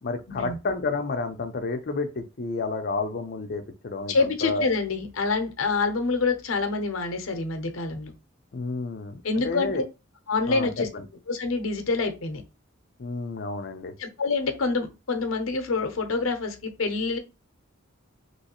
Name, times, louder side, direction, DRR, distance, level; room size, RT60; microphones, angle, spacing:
voice 1, 0.0-4.7 8.5-9.8 10.4-11.0 13.0-13.9, left 3 dB, 50° left, 0.6 m, -30 dB
voice 2, 4.1-8.1 9.2-9.8 10.3-10.9 11.3-12.4 14.0-17.2, left 3 dB, 80° left, 0.7 m, -26 dB
3.1 x 3.0 x 2.9 m
head